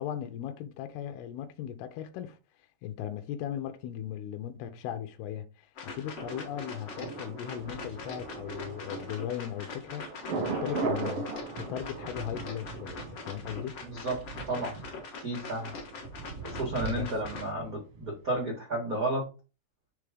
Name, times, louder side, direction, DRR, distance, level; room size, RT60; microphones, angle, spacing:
voice 1, 0.0-2.4 2.8-11.3 11.6-13.8 16.9-17.2, left 10 dB, 80° left, 2.5 m, -38 dB
sound 1, 5.8-17.5, left 4 dB, 65° left, 1.5 m, -43 dB
Thunder, 6.2-18.0 18.3-18.4, right 4 dB, 65° right, 1.4 m, -39 dB
voice 2, 13.8-14.8 15.2-15.7 16.4-19.3, right 2 dB, 90° right, 0.7 m, -32 dB
6.1 x 3.6 x 4.9 m
omnidirectional pair, 4.8 m